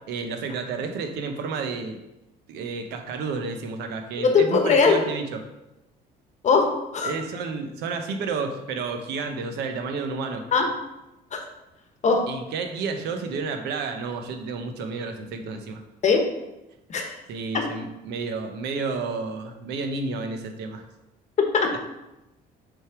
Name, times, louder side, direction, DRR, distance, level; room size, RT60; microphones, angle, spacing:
voice 1, 0.1-2.0 2.5-5.4 7.0-10.5 12.3-15.8 17.3-20.8, right 4 dB, 85° right, 6 dB, 0.8 m, -31 dB
voice 2, 4.2-5.0 6.4-7.1 10.5-10.7 11.3-11.4 12.0-12.2 16.0-16.3 16.9-17.2 17.5-17.7 21.4-21.8, left 5 dB, 45° left, 4 dB, 1.0 m, -20 dB
6.2 x 3.4 x 4.7 m, 0.94 s
cardioid pair, 110°, 17 cm